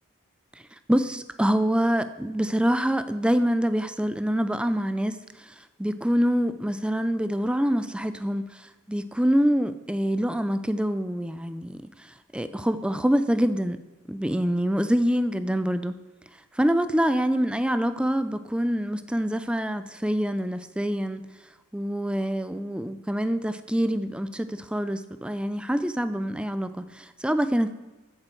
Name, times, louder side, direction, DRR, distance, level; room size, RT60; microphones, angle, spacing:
voice 1, 0.9-5.5 5.8-12.1 12.3-13.8 14.1-16.0 16.6-21.3 21.7-27.7, equal, 5° right, 11 dB, 0.5 m, -25 dB
14.0 x 7.5 x 4.6 m, 1.2 s
head